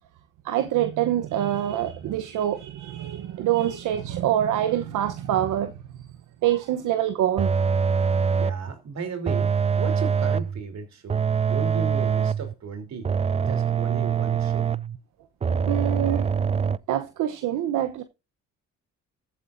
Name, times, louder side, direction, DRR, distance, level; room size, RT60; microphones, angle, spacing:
voice 1, 0.4-5.7 6.4-7.5 15.5-16.3 16.9-18.0, right 11 dB, 80° right, 1.0 m, -25 dB
sound 1, 7.4-8.7 9.3-10.6 11.1-12.5 13.0-15.0 15.4-16.8, right 6 dB, 20° right, 0.4 m, -24 dB
voice 2, 8.3-13.1 13.5-14.6, right 5 dB, 60° right, 3.4 m, -35 dB
14.5 x 8.3 x 2.6 m
cardioid pair, 90°, 30 cm